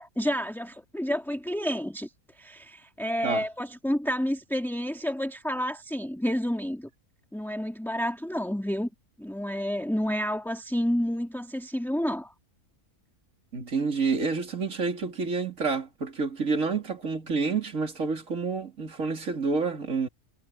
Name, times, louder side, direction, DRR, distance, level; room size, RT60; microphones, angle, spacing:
voice 1, 0.0-6.9 7.3-8.9 9.2-12.3, equal, ahead, 2.1 m, -30 dB
voice 2, 13.5-20.1, right 4 dB, 60° right, 3.5 m, -28 dB
omnidirectional pair, 1.6 m